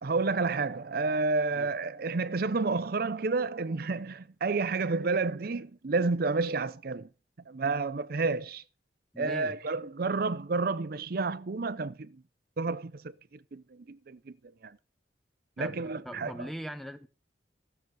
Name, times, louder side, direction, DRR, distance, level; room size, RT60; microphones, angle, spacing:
voice 1, 0.0-7.1 7.5-8.6 9.2-12.2 12.6-13.1 13.5-14.4 14.6-14.7 15.6-16.5, right 3 dB, 55° right, 0.6 m, -30 dB
voice 2, 9.1-9.5 15.6-17.1, equal, ahead, 0.9 m, -41 dB
15.0 x 6.9 x 6.2 m
head